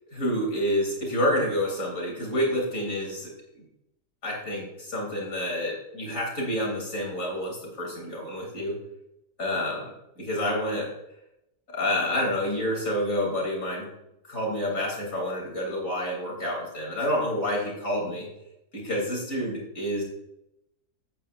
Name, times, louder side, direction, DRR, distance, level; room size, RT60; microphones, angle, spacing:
voice 1, 0.1-3.6 4.2-8.8 9.4-10.9 11.7-13.9 14.2-18.3 18.7-20.0, left 1 dB, 55° left, -2 dB, 3.8 m, -28 dB
14.0 x 9.2 x 2.6 m, 0.86 s
omnidirectional pair, 1.6 m